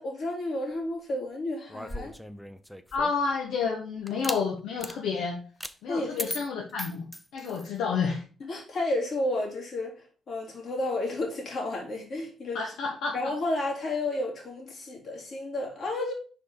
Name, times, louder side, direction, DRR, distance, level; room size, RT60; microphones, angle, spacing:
voice 1, 0.0-2.1 5.9-6.3 8.5-12.6 13.1-16.1, left 2 dB, 55° left, 3.2 m, -31 dB
sound 1, 1.7-3.3 4.1-4.4 4.8-5.0 5.6-5.8 6.2-7.7, equal, 5° left, 0.6 m, -38 dB
voice 2, 2.9-5.4 5.8-7.1 7.3-8.2 12.5-13.2, left 5 dB, 80° left, 1.1 m, -30 dB
5.0 x 5.0 x 4.6 m
supercardioid pair, 65°, 0 cm